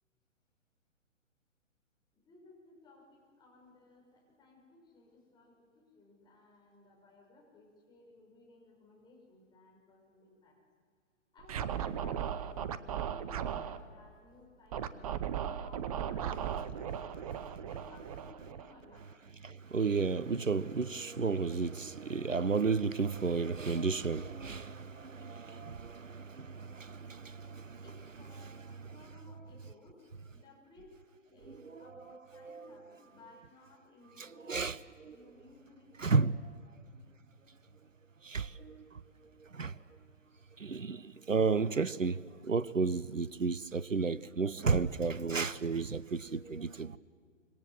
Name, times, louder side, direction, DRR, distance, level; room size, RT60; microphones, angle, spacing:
voice 1, 2.1-10.5 11.3-12.3 13.1-15.2 15.5-17.4 17.7-19.1 27.8-31.0 31.3-34.6 35.1-36.2, left 3 dB, 10° left, 6.2 m, -59 dB
Scratching (performance technique), 11.4-13.8 14.7-19.0, right 9 dB, 30° right, 0.9 m, -37 dB
voice 2, 19.4-27.8 31.7-31.8 32.4-32.6 34.2-35.2 36.0-36.3 38.2-38.9 39.5-39.7 40.6-47.0, right 4 dB, 85° right, 0.8 m, -33 dB
26.0 x 25.0 x 7.6 m
figure-of-eight pair, 125°, 38 cm